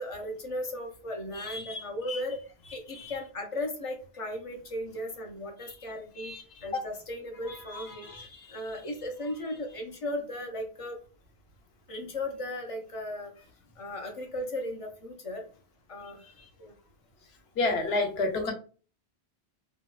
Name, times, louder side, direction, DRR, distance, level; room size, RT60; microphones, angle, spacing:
voice 1, 0.0-2.4 2.7-6.3 6.6-11.0 11.9-13.3 13.8-15.5 15.9-16.3 16.6-16.7, left 1 dB, 45° left, 3 dB, 0.5 m, -36 dB
voice 2, 1.4-1.8 2.1-2.2 2.9-3.0 6.2-6.4 7.7-8.3 17.6-18.5, left 2 dB, 70° left, 4 dB, 0.9 m, -30 dB
2.7 x 2.1 x 2.3 m, 0.37 s
omnidirectional pair, 1.1 m